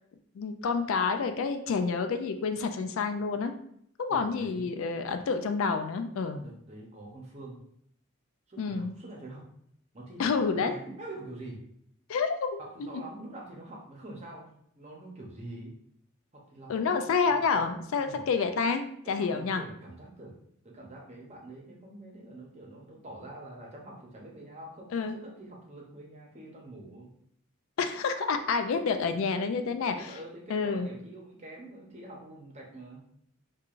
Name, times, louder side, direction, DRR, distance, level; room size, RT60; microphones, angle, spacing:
voice 1, 0.4-3.5 4.0-6.4 8.6-9.0 10.2-10.7 12.1-12.5 16.7-19.6 24.9-25.2 27.8-30.1 30.5-30.9, left 5 dB, 65° left, 7 dB, 0.3 m, -28 dB
voice 2, 4.1-4.7 6.4-7.6 8.5-9.4 9.9-11.6 12.6-14.5 14.8-15.7 16.3-18.2 19.0-20.3 20.6-27.1 28.9-33.0, right 2 dB, 30° right, -2 dB, 0.8 m, -46 dB
4.6 x 2.4 x 2.4 m, 0.69 s
head